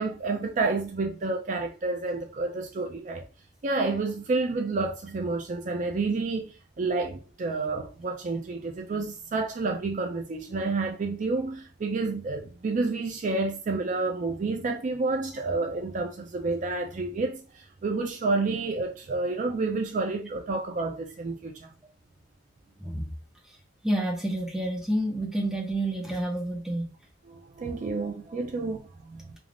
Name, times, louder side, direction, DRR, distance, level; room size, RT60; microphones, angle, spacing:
voice 1, 0.0-3.3 3.6-21.7 27.2-29.4, right 3 dB, 40° right, 0.4 m, -29 dB
voice 2, 22.8-23.1 23.8-26.9, right 1 dB, 5° right, 0.7 m, -29 dB
3.3 x 2.4 x 2.4 m
head